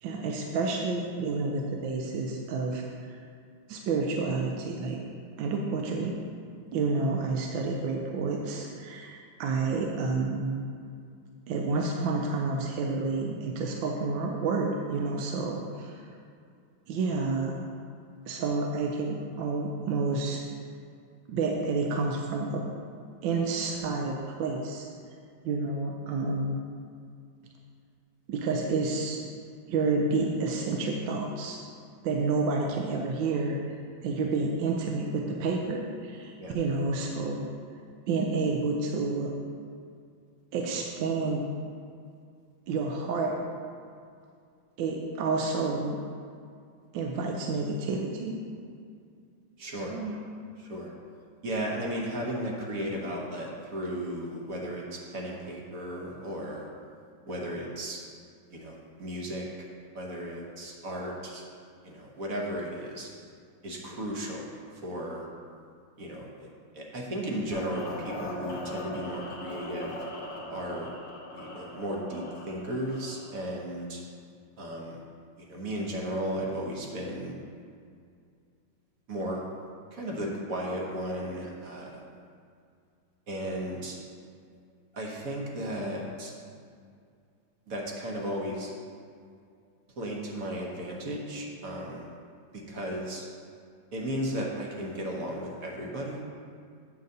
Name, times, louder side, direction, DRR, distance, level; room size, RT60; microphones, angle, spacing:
voice 1, 0.0-2.8 3.1-3.2 3.7-5.0 5.4-6.1 6.7-10.7 11.5-16.1 16.9-17.5 18.3-20.4 21.3-22.6 23.2-24.9 25.4-26.6 28.3-29.2 29.7-31.6 32.0-33.8 34.0-37.5 38.1-39.3 40.5-41.5 42.7-43.4 44.8-46.0 46.9-48.4 49.7-50.2, right 3 dB, 75° right, 1 dB, 1.4 m, -29 dB
voice 2, 49.6-49.9 50.6-50.9 51.4-56.7 57.3-58.0 58.5-59.5 59.9-61.4 61.8-63.1 63.6-64.5 64.7-65.3 66.0-66.5 66.7-69.9 70.5-70.9 71.3-74.0 74.6-75.0 75.4-77.3 79.1-79.4 79.9-82.0 83.3-84.0 84.9-86.3 87.7-88.7 90.0-92.1 92.5-93.2 93.9-96.3, equal, 50° right, -2 dB, 1.3 m, -35 dB
sound 1, 67.5-73.5, left 1 dB, 45° left, 1.5 m, -40 dB
8.2 x 4.0 x 6.5 m, 2.3 s
omnidirectional pair, 2.1 m